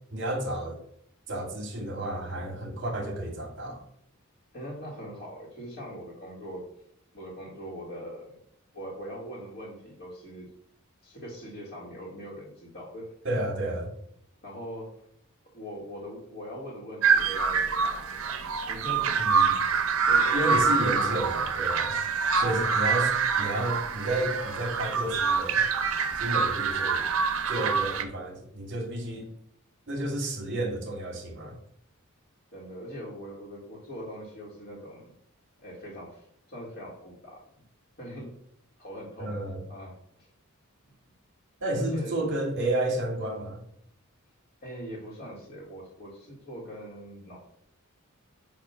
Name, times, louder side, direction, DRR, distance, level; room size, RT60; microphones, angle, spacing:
voice 1, 0.1-0.8 1.3-3.8 13.2-13.9 19.2-19.5 20.3-22.0 22.3-25.7 26.1-27.0 27.5-29.3 29.9-31.6 39.2-39.6 41.6-43.6, right 1 dB, 55° right, 0 dB, 2.4 m, -31 dB
voice 2, 4.5-6.7 7.1-8.4 8.7-10.5 11.0-13.1 14.4-15.0 15.5-19.2 20.1-21.4 22.5-22.8 32.5-35.1 35.6-37.4 38.0-38.3 38.8-40.3 41.8-42.4 44.6-47.4, equal, 55° left, -7 dB, 2.0 m, -42 dB
sound 1, 17.0-28.0, right 5 dB, 75° right, 0.9 m, -26 dB
9.0 x 3.0 x 5.7 m, 0.71 s
head